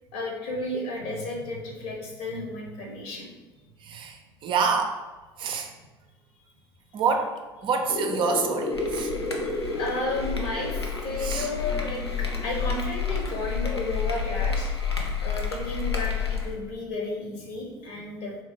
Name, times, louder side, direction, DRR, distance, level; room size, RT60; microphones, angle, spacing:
voice 1, 0.1-3.3 9.4-14.7 15.2-18.3, left 2 dB, 55° left, 0 dB, 1.1 m, -33 dB
voice 2, 3.8-5.0 5.4-5.7 6.9-9.1 11.2-11.5 18.0-18.1, right 5 dB, 40° right, 4 dB, 0.5 m, -27 dB
sound 1, 7.9-13.0, left 2 dB, 30° left, 0.5 m, -33 dB
sound 2, 8.7-16.6, left 6 dB, 85° left, 0.5 m, -30 dB
3.6 x 2.8 x 4.5 m, 1.2 s
figure-of-eight pair, 60°, 13 cm